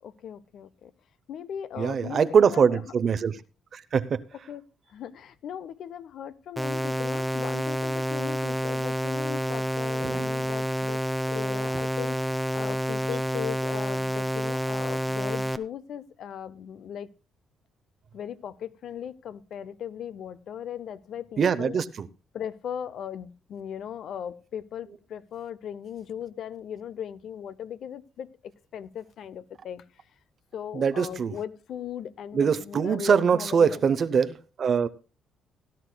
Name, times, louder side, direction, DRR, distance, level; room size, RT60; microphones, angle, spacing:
voice 1, 0.0-0.9 1.3-2.8 4.3-4.6 4.9-11.0 11.3-17.1 18.1-21.8 22.3-30.0 30.5-33.9, left 9 dB, 70° left, 0.6 m, -38 dB
voice 2, 1.8-3.3 3.7-4.2 10.0-10.3 21.4-22.1 30.7-31.3 32.3-34.9, right 6 dB, 50° right, 0.6 m, -23 dB
sound 1, 6.6-15.6, equal, ahead, 0.6 m, -29 dB
17.5 x 11.0 x 2.2 m
cardioid pair, 90°, 0 cm